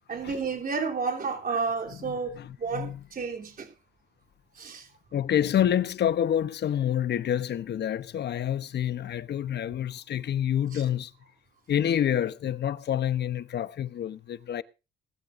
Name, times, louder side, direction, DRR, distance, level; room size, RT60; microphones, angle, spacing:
voice 1, 0.1-3.7 4.6-4.9, right 5 dB, 45° right, 3.2 m, -31 dB
voice 2, 1.9-3.0 5.1-11.1 11.7-14.6, left 10 dB, 60° left, 0.9 m, -28 dB
19.0 x 13.0 x 2.6 m
cardioid pair, 90°, 20 cm